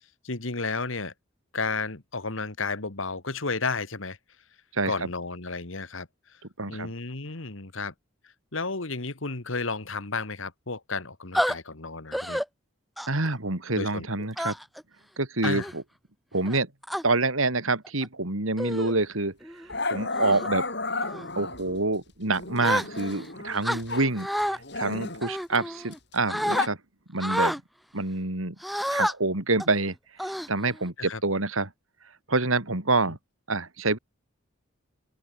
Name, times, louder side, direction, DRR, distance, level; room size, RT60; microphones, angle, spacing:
voice 1, 0.2-1.1 1.5-4.2 4.9-6.1 6.7-7.9 8.5-12.4 13.7-14.3 15.4-15.7 31.0-31.2 33.1-33.2, left 4 dB, 70° left, 1.9 m, -32 dB
voice 2, 6.6-6.9 13.1-14.5 15.2-15.8 16.3-16.7 17.0-19.3 19.9-20.6 21.4-24.3 24.8-26.8 27.1-27.6 27.9-28.6 28.9-29.9 30.2-31.7 32.3-33.2 33.5-34.0, right 3 dB, 80° right, 3.5 m, -27 dB
sound 1, 11.3-11.5 12.1-12.4 13.0-13.3 14.4-14.8 15.4-15.7 16.4-17.0 17.8-18.1 18.6-18.9 19.4-19.7 20.2-20.5 21.0-21.3 22.6-23.2 23.6-24.6 25.2-26.0 26.3-26.7 27.2-27.6 28.6-29.1 29.6-29.8 30.2-30.9, equal, ahead, 2.0 m, -29 dB
Growling, 18.7-19.0 19.7-21.8 22.3-24.1 24.4-26.7, left 3 dB, 55° left, 7.6 m, -33 dB
open air
head